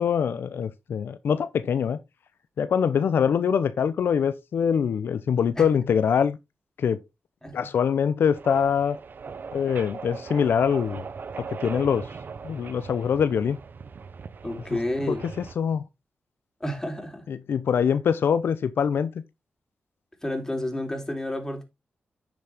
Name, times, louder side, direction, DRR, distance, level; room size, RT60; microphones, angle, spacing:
voice 1, 0.0-2.0 2.6-6.4 6.8-7.0 7.5-9.0 9.5-11.0 11.4-12.1 12.4-13.6 15.1-15.2 15.6-15.8 17.3-19.1, left 7 dB, 85° left, 0.7 m, -24 dB
sound 1, 8.3-15.5, right 5 dB, 60° right, 0.8 m, -39 dB
voice 2, 14.4-15.2 16.6-17.2 20.2-21.6, left 1 dB, 15° left, 3.8 m, -30 dB
10.0 x 6.1 x 3.5 m
cardioid pair, 70°, 4 cm